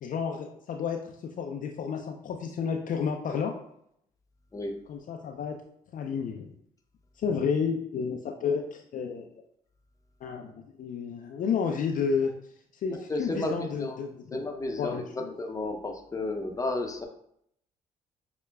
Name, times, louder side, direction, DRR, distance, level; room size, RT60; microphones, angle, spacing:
voice 1, 0.0-1.0 1.4-3.5 4.9-5.5 5.9-6.5 7.2-9.3 10.2-12.3 12.7-14.5 14.8-15.3, left 6 dB, 50° left, 2 dB, 0.4 m, -31 dB
voice 2, 12.9-14.0 14.3-17.0, left 2 dB, 20° left, 2 dB, 0.7 m, -33 dB
5.7 x 2.1 x 2.2 m, 0.72 s
supercardioid pair, 55°, 17 cm